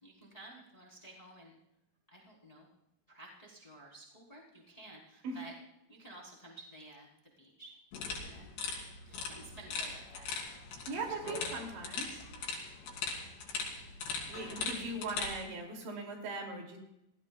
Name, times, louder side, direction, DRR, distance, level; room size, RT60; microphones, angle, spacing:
voice 1, 0.0-1.6 2.1-2.7 3.1-5.5 5.9-7.1 7.4-8.5 9.0-10.3 10.9-11.4 12.1-12.5 12.8-13.0 14.4-14.7, right 1 dB, 10° left, -3 dB, 3.3 m, -53 dB
sound 1, 7.9-15.4, left 4 dB, 70° left, 5.1 m, -40 dB
voice 2, 10.9-12.1 14.3-16.8, right 2 dB, 75° right, 1 dB, 5.0 m, -39 dB
28.5 x 16.5 x 2.4 m, 0.83 s
omnidirectional pair, 5.2 m